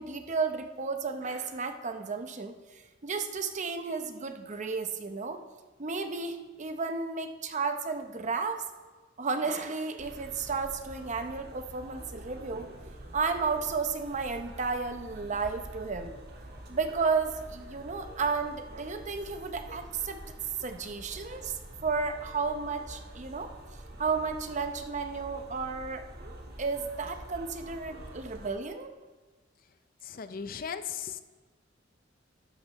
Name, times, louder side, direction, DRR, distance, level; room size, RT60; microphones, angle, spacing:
voice 1, 0.0-2.5 3.0-5.4 5.8-8.6 9.2-12.7 13.1-16.1 16.7-20.2 20.6-21.5 21.8-23.5 24.0-26.1 26.6-28.9, right 4 dB, 40° right, 7 dB, 0.7 m, -33 dB
sound 1, 10.0-28.5, right 1 dB, 55° right, 1.6 m, -47 dB
voice 2, 30.0-31.2, left 7 dB, 50° left, 11 dB, 0.5 m, -37 dB
12.5 x 11.5 x 3.1 m, 1.3 s
head